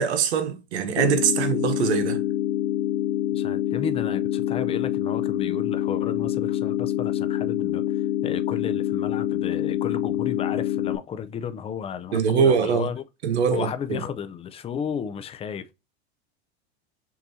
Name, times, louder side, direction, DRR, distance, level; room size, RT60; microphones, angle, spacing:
voice 1, 0.0-2.2 12.1-12.9 13.2-14.0, right 7 dB, 85° right, 1.1 m, -23 dB
sound 1, 1.0-11.0, left 12 dB, 80° left, 0.5 m, -26 dB
voice 2, 3.3-13.0 13.5-15.7, left 7 dB, 20° left, 0.5 m, -33 dB
6.0 x 2.7 x 2.7 m
supercardioid pair, 125°, 32 cm